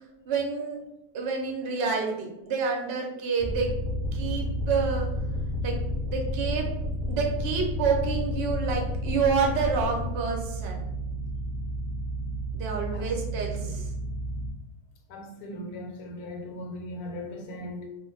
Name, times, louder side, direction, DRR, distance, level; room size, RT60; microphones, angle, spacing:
voice 1, 0.3-0.8 1.1-3.7 4.1-5.1 5.6-5.8 6.1-6.7 7.1-10.8 12.5-13.9, right 5 dB, 55° right, 1 dB, 0.7 m, -28 dB
sound 1, 3.4-14.5, equal, ahead, 0.8 m, -31 dB
voice 2, 15.1-17.9, left 1 dB, 80° left, 3 dB, 1.1 m, -38 dB
2.4 x 2.2 x 3.8 m, 0.91 s
omnidirectional pair, 1.5 m